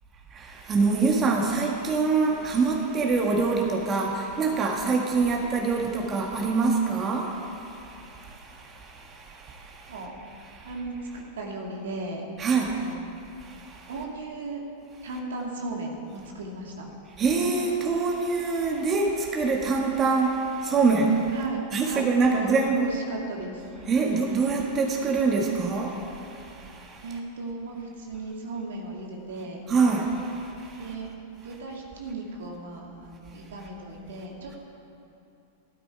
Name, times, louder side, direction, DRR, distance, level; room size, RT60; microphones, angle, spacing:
voice 1, 0.3-9.9 10.5-10.7 12.4-12.9 13.4-13.9 17.2-21.4 21.7-22.9 23.9-27.1 29.7-30.9, right 4 dB, 30° right, 0 dB, 1.8 m, -25 dB
voice 2, 10.6-12.3 12.8-13.0 13.9-14.6 15.0-16.9 21.3-23.7 27.0-29.6 30.8-34.6, right 2 dB, 75° right, -1 dB, 2.3 m, -36 dB
13.5 x 12.5 x 4.8 m, 2.8 s
hypercardioid pair, 100°, 0 cm